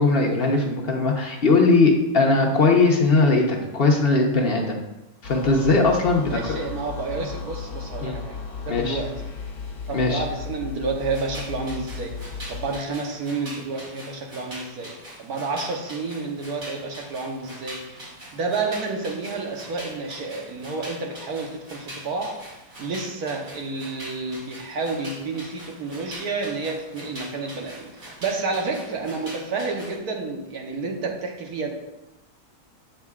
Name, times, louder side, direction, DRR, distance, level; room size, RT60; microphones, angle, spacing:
voice 1, 0.0-4.8 5.2-6.4 8.0-8.2 8.7-9.0 9.9-10.2, left 3 dB, 45° left, 1 dB, 0.9 m, -19 dB
sound 1, 5.2-12.8, left 5 dB, 75° left, 1.3 m, -35 dB
voice 2, 6.2-9.3 9.9-14.9 15.2-17.9 18.3-22.4 22.8-31.7, right 3 dB, 80° right, 2 dB, 1.4 m, -30 dB
sound 2, 11.0-30.0, right 1 dB, 65° right, 2.7 m, -42 dB
7.8 x 6.5 x 2.4 m, 0.97 s
omnidirectional pair, 1.6 m